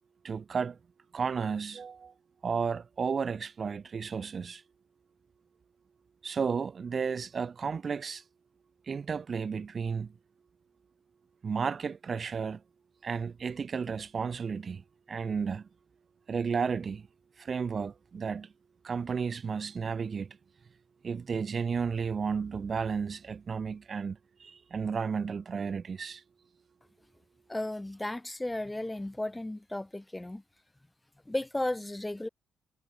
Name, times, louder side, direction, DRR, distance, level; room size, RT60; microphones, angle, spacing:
voice 1, 0.2-0.8 1.1-2.1 2.4-4.6 6.2-8.2 8.9-10.1 11.4-12.6 13.0-15.7 16.3-17.1 17.4-18.5 18.8-20.4 21.0-26.2, right 6 dB, 40° right, 3.2 m, -33 dB
voice 2, 27.5-30.4 31.3-32.3, left 1 dB, 10° left, 7.6 m, -34 dB
cardioid pair, 90°, 0 cm